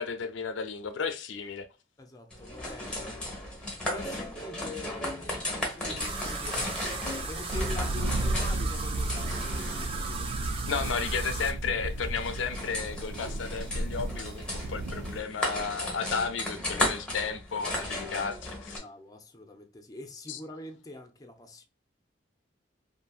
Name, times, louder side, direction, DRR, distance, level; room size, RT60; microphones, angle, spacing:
voice 1, 0.0-1.7 10.7-18.8 20.3-20.4, left 5 dB, 90° left, 0.5 m, -33 dB
voice 2, 2.0-10.4 18.0-18.3 18.7-21.6, left 2 dB, 20° left, 0.5 m, -44 dB
sound 1, 2.3-18.8, left 1 dB, 5° left, 0.9 m, -36 dB
sound 2, 6.0-11.5, right 3 dB, 30° right, 0.5 m, -37 dB
sound 3, 7.5-15.2, right 1 dB, 90° right, 0.4 m, -33 dB
2.7 x 2.7 x 2.3 m
head